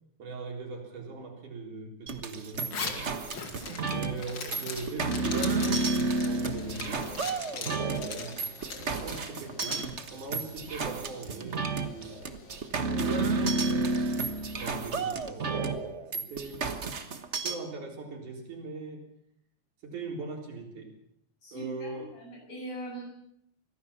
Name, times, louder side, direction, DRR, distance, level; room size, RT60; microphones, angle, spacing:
voice 1, 0.2-3.1 3.6-5.7 6.2-7.1 7.5-12.2 12.6-14.1 14.5-16.6 17.4-19.1 19.8-20.9 21.5-22.1, right 3 dB, 85° right, 2 dB, 5.3 m, -41 dB
sound 1, 2.1-17.5, right 3 dB, 65° right, 0.6 m, -31 dB
Zipper (clothing), 2.5-9.9, left 4 dB, 40° left, 2.7 m, -40 dB
sound 2, 5.3-13.2, left 2 dB, 90° left, 5.4 m, -50 dB
voice 2, 21.4-23.0, right 1 dB, 60° left, 0 dB, 8.6 m, -41 dB
24.5 x 16.5 x 7.3 m, 0.72 s
omnidirectional pair, 3.4 m